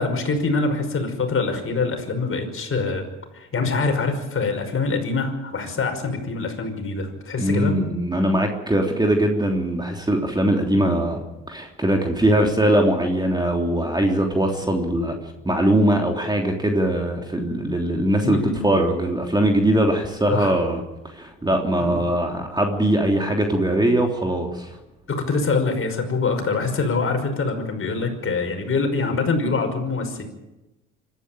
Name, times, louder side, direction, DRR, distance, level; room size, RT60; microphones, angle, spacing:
voice 1, 0.0-3.0 3.3-7.8 12.3-12.5 14.6-14.7 18.2-18.7 20.3-20.6 21.8-22.0 25.1-30.2, left 4 dB, 35° left, 5 dB, 5.6 m, -24 dB
voice 2, 7.4-15.2 15.4-24.7, right 1 dB, 10° right, 2 dB, 3.3 m, -21 dB
25.5 x 13.0 x 9.1 m, 1.0 s
hypercardioid pair, 65°, 36 cm